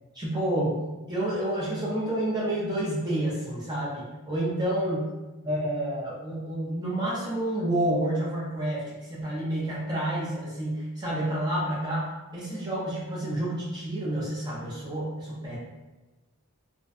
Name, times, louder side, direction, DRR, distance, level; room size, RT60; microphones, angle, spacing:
voice 1, 0.1-0.8 1.1-5.1 5.4-15.6, right 1 dB, 20° right, -6 dB, 0.4 m, -29 dB
2.5 x 2.1 x 2.3 m, 1.2 s
head